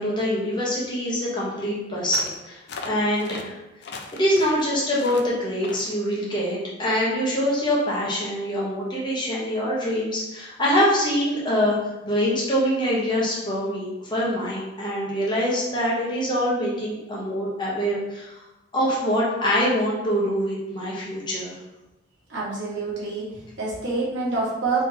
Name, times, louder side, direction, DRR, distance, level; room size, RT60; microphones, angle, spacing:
voice 1, 0.0-3.6 4.1-11.8 12.0-18.3 18.7-21.5, equal, 25° left, -6 dB, 1.1 m, -24 dB
sound 1, 2.1-2.4 2.7-3.4 3.8-4.6 5.0-5.3 5.6-5.9, left 4 dB, 65° left, 0.4 m, -37 dB
voice 2, 22.3-24.8, right 3 dB, 80° right, -7 dB, 1.4 m, -27 dB
3.9 x 3.3 x 2.8 m, 0.95 s
head